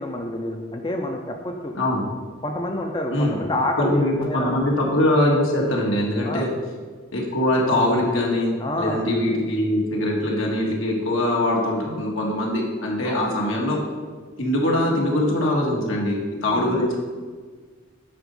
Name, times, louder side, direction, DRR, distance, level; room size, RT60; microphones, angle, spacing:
voice 1, 0.0-1.7 2.4-4.6 6.2-6.5 8.6-9.0 13.0-13.2 16.5-16.9, left 1 dB, 20° left, 3 dB, 0.5 m, -28 dB
voice 2, 3.1-3.4 3.8-6.5 7.1-13.8 14.4-17.0, left 1 dB, 75° left, -1 dB, 1.7 m, -22 dB
9.6 x 4.2 x 5.3 m, 1.5 s
head